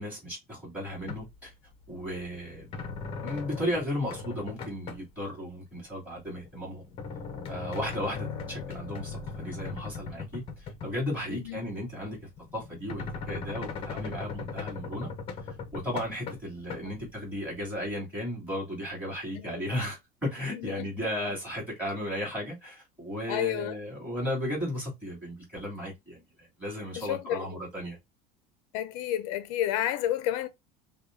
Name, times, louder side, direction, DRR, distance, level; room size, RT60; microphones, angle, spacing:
voice 1, 0.0-1.5 1.9-2.9 3.2-6.9 7.5-12.2 12.5-15.1 15.7-28.0, equal, 10° right, 3.1 m, -35 dB
sound 1, 0.9-1.5 1.8-5.1 5.8-11.3 11.6-11.7 12.4-17.1 17.6-17.7, left 5 dB, 30° left, 0.7 m, -39 dB
voice 2, 11.3-11.6 16.9-17.0 19.3-19.6 20.5-21.1 23.3-23.8 26.9-27.6 28.7-30.5, left 12 dB, 80° left, 0.6 m, -31 dB
6.4 x 2.3 x 2.6 m
cardioid pair, 160°, 18 cm